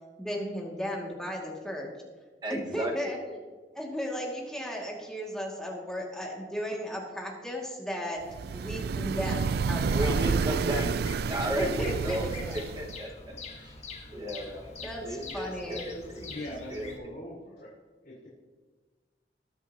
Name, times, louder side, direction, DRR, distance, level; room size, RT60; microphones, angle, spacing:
voice 1, 0.2-1.9 2.5-3.4 3.7-8.2 8.5-10.2 11.6-12.6 14.8-15.9, equal, 5° left, -2 dB, 2.3 m, -35 dB
voice 2, 2.4-3.1 9.9-11.0 11.2-13.8 14.1-16.3 16.7-17.1, equal, 25° right, 0 dB, 1.7 m, -35 dB
sound 1, 8.3-13.0, right 5 dB, 60° right, 0.4 m, -29 dB
Bird vocalization bird call bird song, 10.6-17.0, left 3 dB, 40° left, 1.7 m, -44 dB
voice 3, 16.1-17.7 18.0-18.3, left 1 dB, 60° left, -8 dB, 4.2 m, -42 dB
21.5 x 8.3 x 3.0 m, 1.3 s
head